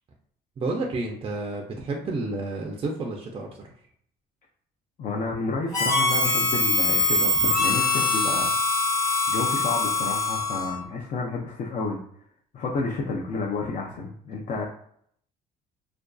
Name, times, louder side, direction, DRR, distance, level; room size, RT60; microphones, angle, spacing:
voice 1, 0.6-3.7, right 2 dB, 30° right, 0 dB, 0.4 m, -30 dB
voice 2, 5.0-8.5 9.3-12.0 12.5-14.6, left 3 dB, 45° left, -1 dB, 0.4 m, -30 dB
Harmonica, 5.7-10.8, left 2 dB, 25° left, 1.0 m, -23 dB
2.5 x 2.2 x 2.3 m, 0.66 s
cardioid pair, 110°, 17 cm